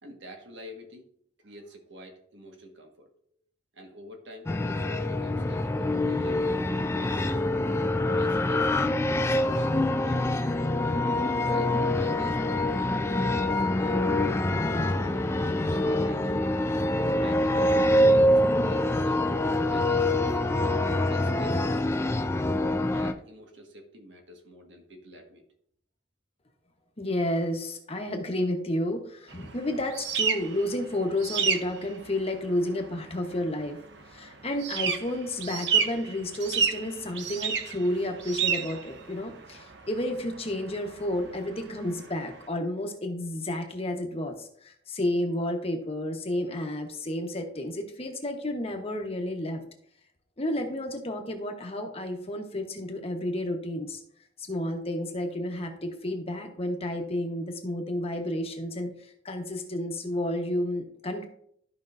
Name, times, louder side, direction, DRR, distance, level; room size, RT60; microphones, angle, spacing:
voice 1, 0.0-1.1 1.4-3.1 3.7-6.4 6.9-7.4 8.1-8.7 9.2-9.7 10.0-10.6 11.2-13.6 14.6-16.5 17.1-17.7 18.1-19.3 19.7-20.8 21.1-22.2 22.8-25.4, equal, 90° right, 2 dB, 1.6 m, -47 dB
sound 1, 4.5-23.1, left 1 dB, 15° left, 0.4 m, -25 dB
voice 2, 27.0-33.8 34.1-49.6 50.4-54.0 54.4-61.2, left 1 dB, 35° left, 4 dB, 1.1 m, -31 dB
sound 2, 29.3-42.5, right 6 dB, 70° right, 0.8 m, -32 dB
13.0 x 5.3 x 2.6 m, 0.67 s
head